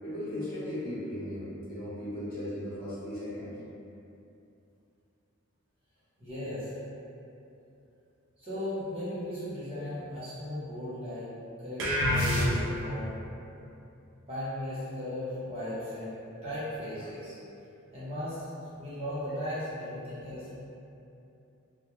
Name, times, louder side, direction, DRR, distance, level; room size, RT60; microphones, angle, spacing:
voice 1, 0.0-3.5, left 1 dB, 40° left, -12 dB, 0.9 m, -37 dB
voice 2, 6.2-6.8 8.4-11.3 11.6-13.1 14.3-17.4 17.9-20.6, left 1 dB, 25° right, -13 dB, 0.8 m, -37 dB
sound 1, 11.8-13.0, left 1 dB, 60° right, 0.4 m, -26 dB
2.2 x 2.1 x 3.0 m, 2.8 s
head